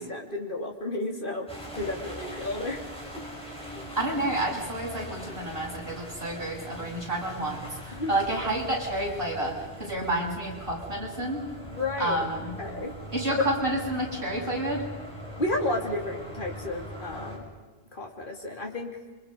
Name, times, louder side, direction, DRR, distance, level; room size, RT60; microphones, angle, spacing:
voice 1, 0.0-1.5 1.8-2.8 3.1-3.2 3.7-3.9 7.9-8.1 11.7-12.2 12.6-13.0 13.4-13.5 15.4-17.5 17.9-18.9, left 2 dB, 55° left, 1 dB, 3.5 m, -32 dB
sound 1, 1.5-17.4, equal, 5° left, 6.6 m, -41 dB
voice 2, 4.0-11.4 12.0-12.6 13.1-14.8, right 1 dB, 60° right, -3 dB, 7.1 m, -30 dB
28.0 x 25.0 x 5.4 m, 1.3 s
omnidirectional pair, 1.1 m